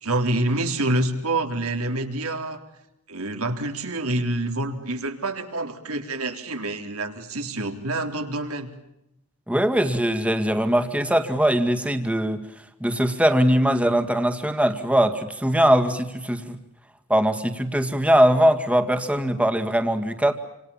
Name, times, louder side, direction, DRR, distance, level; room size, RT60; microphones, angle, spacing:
voice 1, 0.0-2.6 3.1-8.7, right 2 dB, 80° right, 5 dB, 3.8 m, -27 dB
voice 2, 9.5-12.4 12.8-16.6 17.1-20.3, equal, 5° right, 8 dB, 2.0 m, -21 dB
28.0 x 27.0 x 7.2 m, 0.85 s
head